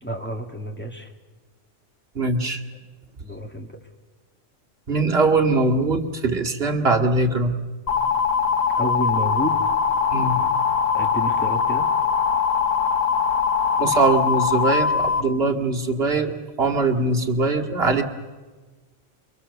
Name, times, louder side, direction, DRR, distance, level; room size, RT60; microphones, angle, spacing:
voice 1, 0.0-1.1 3.2-3.7 8.7-9.6 10.3-10.6 10.9-11.9, right 1 dB, 10° left, 3 dB, 2.2 m, -30 dB
voice 2, 2.2-2.6 4.9-7.5 10.1-10.4 13.8-18.0, right 3 dB, 50° right, 2 dB, 2.3 m, -21 dB
sound 1, 7.9-15.2, left 6 dB, 80° left, 1.6 m, -21 dB
29.0 x 24.0 x 7.0 m, 1.3 s
omnidirectional pair, 1.3 m